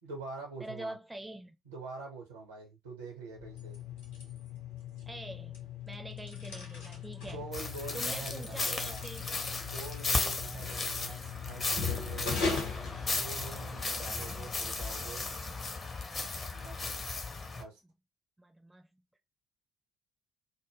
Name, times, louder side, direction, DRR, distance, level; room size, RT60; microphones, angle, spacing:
voice 1, 0.0-0.9 1.6-3.8 7.2-9.0 9.6-12.5 13.0-15.3 16.5-16.9 17.6-17.8, right 4 dB, 80° right, 0.7 m, -45 dB
voice 2, 0.6-1.6 5.1-7.5 7.9-9.3 10.2-10.7 18.4-18.9, right 1 dB, 10° right, 0.4 m, -45 dB
sound 1, 3.3-13.8, left 5 dB, 75° left, 0.7 m, -39 dB
sound 2, 7.5-17.6, left 3 dB, 35° left, 0.5 m, -35 dB
2.1 x 2.0 x 3.2 m
figure-of-eight pair, 45°, 0 cm